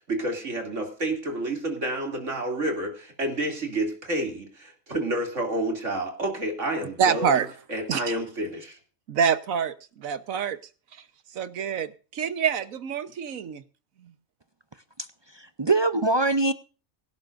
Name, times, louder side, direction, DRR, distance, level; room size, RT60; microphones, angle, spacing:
voice 1, 0.1-8.8, right 1 dB, 65° right, 3.1 m, -29 dB
voice 2, 7.0-7.5 7.9-8.0 9.1-10.6 11.3-13.6, right 7 dB, 80° right, 1.4 m, -26 dB
voice 3, 15.0-16.5, right 2 dB, 40° right, 0.4 m, -24 dB
23.5 x 12.0 x 2.5 m
omnidirectional pair, 1.4 m